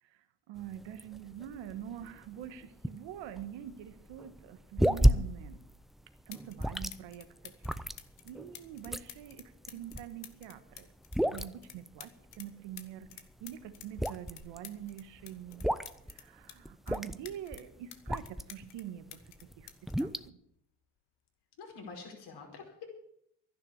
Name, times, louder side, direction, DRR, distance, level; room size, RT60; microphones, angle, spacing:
voice 1, 0.0-5.6 6.3-7.8 8.2-10.9 11.3-13.1 13.4-15.7 16.1-19.7 20.0-20.4, right 10 dB, 75° right, 10 dB, 1.4 m, -45 dB
sound 1, 0.5-18.7 19.1-20.3, equal, ahead, 0.5 m, -33 dB
sound 2, 5.8-5.9 6.3-6.7 6.9-12.5 12.8-16.6 16.9-18.8 19.1-20.9 21.9-22.1, left 12 dB, 80° left, 1.5 m, -51 dB
voice 2, 21.6-22.9, left 4 dB, 60° left, 1 dB, 5.0 m, -46 dB
12.0 x 10.5 x 8.6 m, 0.74 s
supercardioid pair, 80°, 45 cm